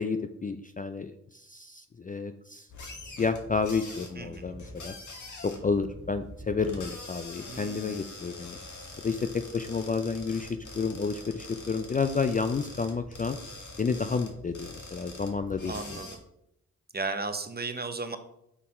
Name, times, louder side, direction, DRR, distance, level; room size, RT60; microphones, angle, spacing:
voice 1, 0.0-2.7 3.0-4.9 5.4-8.6 9.0-13.4 13.8-15.8, left 5 dB, 25° left, 9 dB, 0.4 m, -30 dB
sound 1, 2.7-16.2, left 2 dB, 55° left, 1.6 m, -44 dB
voice 2, 4.2-4.5 7.5-8.0 15.7-16.2 16.9-18.2, right 3 dB, 25° right, 9 dB, 0.8 m, -35 dB
5.6 x 4.1 x 4.3 m, 0.79 s
supercardioid pair, 45°, 36 cm